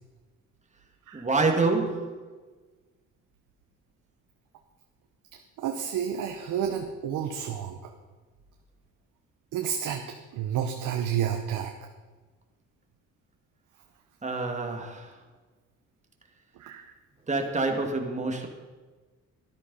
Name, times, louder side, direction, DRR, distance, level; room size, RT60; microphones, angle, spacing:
voice 1, 1.1-2.2 14.2-15.1 17.3-18.5, right 3 dB, 25° right, 2 dB, 2.2 m, -27 dB
voice 2, 5.6-7.8 9.5-10.0 10.3-11.7 16.6-16.8, right 9 dB, 90° right, 4 dB, 1.1 m, -30 dB
13.0 x 11.5 x 5.6 m, 1.3 s
cardioid pair, 90°, 30 cm